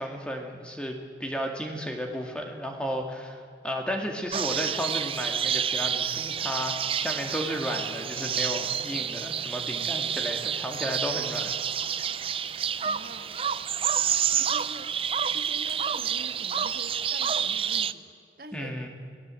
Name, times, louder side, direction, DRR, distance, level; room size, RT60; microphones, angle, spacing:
voice 1, 0.0-11.5 18.5-18.9, equal, 5° left, 2 dB, 2.2 m, -33 dB
sound 1, 4.3-17.9, right 8 dB, 30° right, 0.5 m, -29 dB
voice 2, 12.8-13.3 14.0-14.9 15.3-18.8, right 1 dB, 55° right, 6 dB, 1.7 m, -46 dB
28.5 x 18.5 x 7.8 m, 2.3 s
head